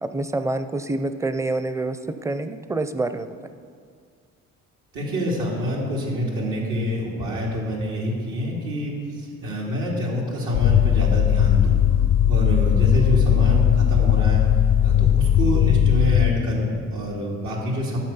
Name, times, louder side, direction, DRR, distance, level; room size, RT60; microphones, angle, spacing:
voice 1, 0.0-3.3, right 2 dB, 10° right, 10 dB, 0.5 m, -27 dB
voice 2, 4.9-11.8 12.3-14.4 14.8-18.0, equal, 80° right, -4 dB, 2.6 m, -26 dB
sound 1, 10.5-16.3, left 10 dB, 90° left, 0.6 m, -18 dB
13.5 x 6.3 x 5.5 m, 2.1 s
cardioid pair, 90°, 30 cm